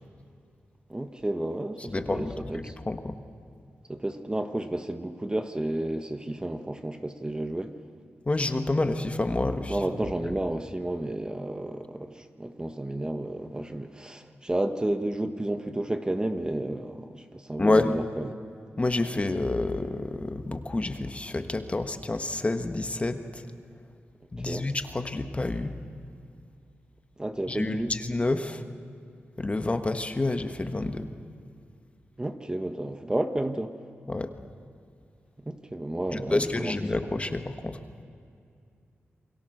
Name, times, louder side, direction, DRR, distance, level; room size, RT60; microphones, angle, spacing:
voice 1, 0.9-2.7 3.9-7.7 9.7-18.3 24.4-24.7 27.2-27.9 32.2-33.7 35.4-36.7, right 1 dB, 20° right, 7 dB, 1.2 m, -31 dB
voice 2, 1.8-3.1 8.2-9.8 17.6-18.0 18.8-23.4 24.3-25.7 27.5-28.6 29.4-31.1 34.1-34.3 36.1-37.8, left 2 dB, 25° left, 7 dB, 1.4 m, -28 dB
28.5 x 22.5 x 6.6 m, 2.4 s
cardioid pair, 70°, 5 cm